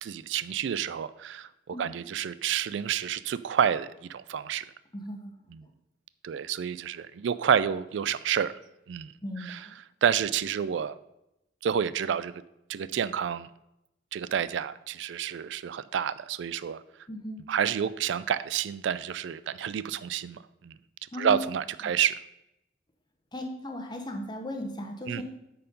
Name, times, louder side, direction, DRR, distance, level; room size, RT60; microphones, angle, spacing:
voice 1, 0.0-4.7 5.5-5.6 6.2-8.5 8.9-9.7 10.0-11.0 11.6-12.4 12.7-13.5 14.1-16.8 17.5-20.7 21.2-22.2 25.1-25.2, right 8 dB, 75° right, 16 dB, 0.3 m, -29 dB
voice 2, 4.9-5.3 9.2-9.8 17.1-17.4 21.1-21.4 23.3-25.2, left 1 dB, 25° left, 3 dB, 1.0 m, -36 dB
8.9 x 4.6 x 5.2 m, 0.85 s
head